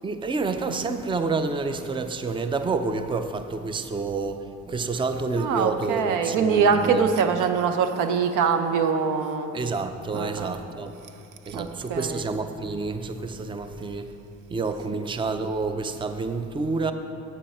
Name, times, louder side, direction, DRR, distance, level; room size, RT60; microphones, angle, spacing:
voice 1, 0.0-4.4 4.7-6.9 9.5-10.9 11.5-14.1 14.5-16.9, right 3 dB, 15° right, 9 dB, 0.4 m, -28 dB
voice 2, 5.4-9.5 10.1-10.5 11.5-12.3 14.9-15.0, right 6 dB, 85° right, 8 dB, 0.7 m, -23 dB
8.6 x 8.1 x 4.3 m, 2.7 s
cardioid pair, 90°, 30 cm